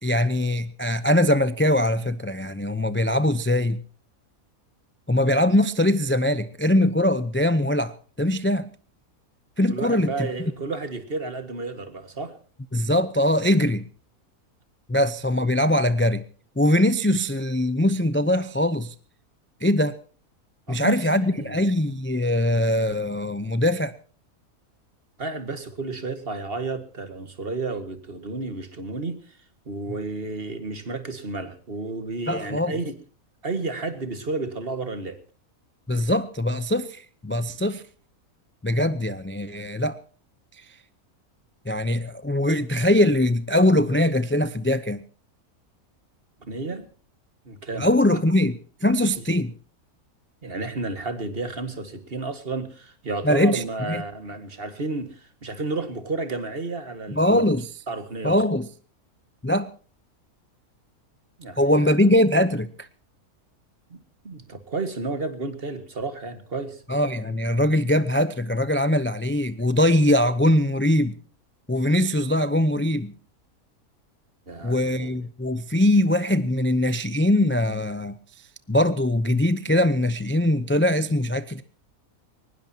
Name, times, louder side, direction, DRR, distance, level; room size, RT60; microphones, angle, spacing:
voice 1, 0.0-3.8 5.1-8.7 9.6-10.3 12.7-13.8 14.9-16.2 16.6-18.9 19.6-19.9 20.7-23.9 32.3-32.7 35.9-37.8 38.6-40.0 41.7-45.0 47.7-49.5 53.2-54.0 57.2-57.7 58.2-58.7 59.4-59.7 61.6-62.9 66.9-71.2 71.7-73.1 74.6-78.2 78.7-81.6, left 1 dB, 15° left, 0.4 m, -22 dB
voice 2, 9.7-12.4 20.7-21.0 21.4-21.6 25.2-29.4 29.7-33.0 33.4-35.2 46.4-46.9 47.5-47.9 50.4-57.5 57.9-58.4 61.4-61.9 63.9-66.8 74.5-75.2, right 3 dB, 40° right, 2.0 m, -32 dB
22.0 x 20.0 x 2.9 m
omnidirectional pair, 1.5 m